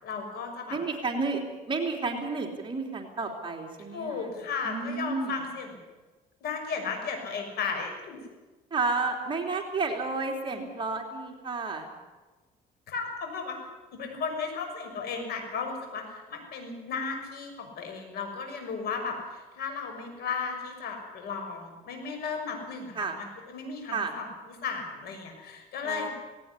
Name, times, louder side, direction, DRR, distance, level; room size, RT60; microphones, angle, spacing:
voice 1, 0.0-0.8 3.9-5.8 6.4-8.3 10.5-10.6 12.9-13.6 13.9-24.3 24.6-26.1, left 5 dB, 70° left, 4 dB, 6.1 m, -35 dB
voice 2, 0.7-4.3 4.6-5.3 8.7-11.9 22.9-23.2 23.9-24.1 25.8-26.1, right 3 dB, 30° right, 2 dB, 3.2 m, -31 dB
18.0 x 18.0 x 9.8 m, 1.2 s
cardioid pair, 110°, 17 cm